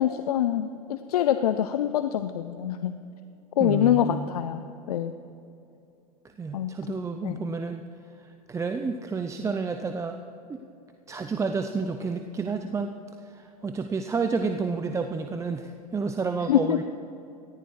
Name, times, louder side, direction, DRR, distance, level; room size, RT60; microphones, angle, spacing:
voice 1, 0.0-2.9 3.6-5.1 6.5-6.8 7.2-7.4 16.5-16.8, left 11 dB, 75° left, 11 dB, 0.6 m, -25 dB
voice 2, 3.6-4.3 6.4-7.8 8.5-10.2 10.5-10.6 11.1-12.9 13.3-16.8, right 4 dB, 15° right, 6 dB, 0.6 m, -30 dB
18.5 x 14.5 x 3.2 m, 2.7 s
hypercardioid pair, 100°, 20 cm